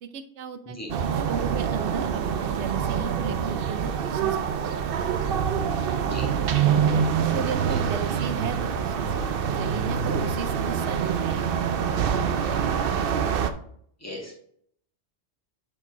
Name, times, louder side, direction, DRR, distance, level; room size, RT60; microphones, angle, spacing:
voice 1, 0.0-0.8 1.0-5.1 6.9-12.1, right 7 dB, 85° right, 10 dB, 1.0 m, -35 dB
sound 1, 0.9-13.5, right 7 dB, 60° right, 0.7 m, -25 dB
voice 2, 14.0-14.3, left 1 dB, 15° left, -2 dB, 1.8 m, -37 dB
7.2 x 4.5 x 4.6 m, 0.65 s
omnidirectional pair, 1.1 m